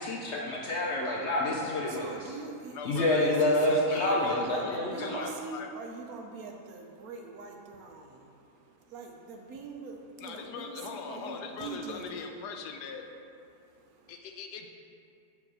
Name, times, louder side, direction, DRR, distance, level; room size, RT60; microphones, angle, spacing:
voice 1, 0.0-2.3 2.8-5.2, left 1 dB, 65° left, -3 dB, 0.7 m, -28 dB
voice 2, 1.9-8.3 8.9-12.2, right 4 dB, 70° right, 2 dB, 1.0 m, -43 dB
voice 3, 2.7-3.4 3.7-5.7 10.2-13.0 14.1-14.7, left 5 dB, 80° left, 4 dB, 1.2 m, -41 dB
7.1 x 3.3 x 6.0 m, 2.5 s
omnidirectional pair, 1.8 m